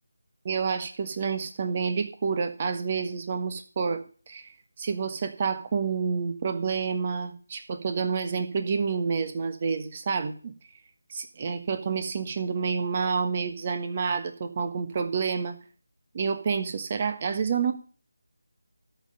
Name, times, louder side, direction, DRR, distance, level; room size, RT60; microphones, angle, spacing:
voice 1, 0.4-10.5 11.1-15.6 16.1-17.7, right 5 dB, 30° right, 9 dB, 1.4 m, -29 dB
13.0 x 5.7 x 6.9 m, 0.41 s
figure-of-eight pair, 160°, 0 cm